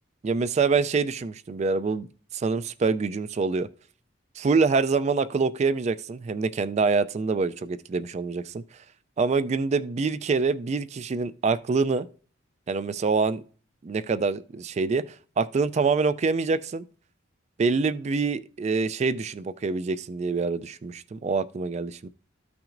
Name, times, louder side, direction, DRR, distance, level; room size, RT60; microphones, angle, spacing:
voice 1, 0.2-2.1 2.3-3.7 4.4-8.6 9.2-12.1 12.7-13.4 13.8-15.0 15.4-16.8 17.6-22.1, right 4 dB, 35° right, 0.3 m, -25 dB
14.0 x 5.9 x 2.5 m
head